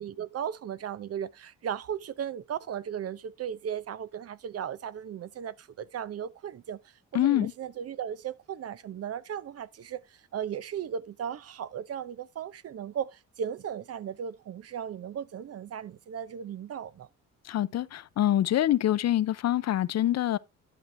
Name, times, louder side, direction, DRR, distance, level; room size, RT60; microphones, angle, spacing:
voice 1, 0.0-6.8 7.1-10.0 10.3-17.1, right 8 dB, 55° right, 0.8 m, -36 dB
voice 2, 7.1-7.5 17.5-20.4, left 12 dB, 60° left, 0.6 m, -25 dB
11.0 x 6.0 x 3.4 m
cardioid pair, 90°, 30 cm